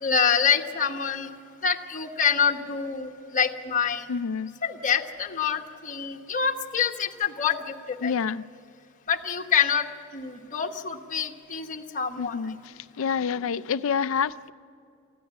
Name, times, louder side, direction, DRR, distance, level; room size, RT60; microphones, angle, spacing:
voice 1, 0.0-1.3 1.6-4.1 4.6-8.3 9.1-9.9 10.1-12.5, left 7 dB, 40° left, 1.1 m, -26 dB
voice 2, 4.1-4.6 8.0-8.5 12.2-12.6 13.0-14.5, left 6 dB, 70° left, 0.4 m, -27 dB
19.5 x 14.5 x 9.5 m
head